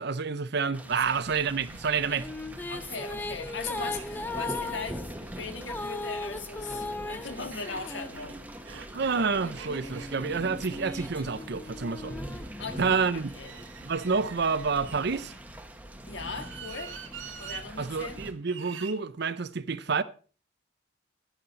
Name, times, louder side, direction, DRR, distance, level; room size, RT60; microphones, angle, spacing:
voice 1, 0.0-2.3 8.9-12.1 12.8-13.3 13.8-15.3 17.8-20.0, right 5 dB, 60° right, 0.7 m, -28 dB
sound 1, 0.7-18.3, equal, 10° right, 1.0 m, -43 dB
sound 2, 1.8-8.8 9.4-13.1, left 2 dB, 10° left, 0.6 m, -39 dB
voice 2, 2.7-8.4 12.6-13.6 16.0-17.0 17.4-18.2, left 4 dB, 65° left, 1.7 m, -39 dB
sound 3, 3.2-3.3 3.6-3.7 4.0-4.9 5.8-12.0 13.1-15.4 16.1-17.6 18.4-19.0, right 7 dB, 80° right, 1.1 m, -46 dB
10.5 x 10.5 x 4.0 m
head